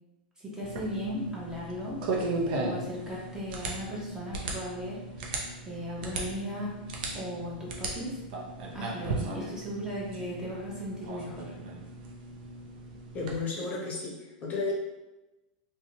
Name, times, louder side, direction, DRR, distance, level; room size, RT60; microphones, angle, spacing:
voice 1, 0.4-2.1 2.5-5.4 5.6-6.7 7.1-8.2 8.7-11.5, equal, 15° right, -5 dB, 0.8 m, -37 dB
sound 1, 0.6-13.4, right 2 dB, 70° right, 0.6 m, -37 dB
voice 2, 13.1-14.7, left 4 dB, 30° left, -2 dB, 0.7 m, -33 dB
2.6 x 2.2 x 2.8 m, 1.0 s
hypercardioid pair, 115°, 5 cm